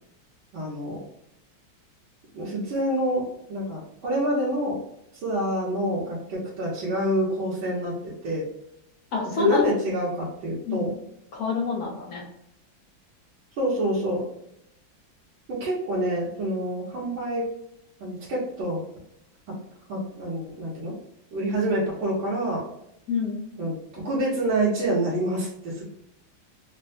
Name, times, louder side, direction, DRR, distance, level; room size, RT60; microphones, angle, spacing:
voice 1, 0.5-1.0 2.3-4.8 5.2-7.9 8.2-8.5 9.4-10.9 13.6-14.2 15.5-17.5 18.0-18.8 19.9-20.9 21.3-22.6 23.6-25.8, right 1 dB, 85° right, -8 dB, 1.7 m, -27 dB
voice 2, 9.1-9.7 10.7-10.9 11.3-12.2 23.1-23.4, left 5 dB, 60° left, -1 dB, 1.2 m, -25 dB
3.9 x 2.1 x 2.7 m, 0.78 s
omnidirectional pair, 2.1 m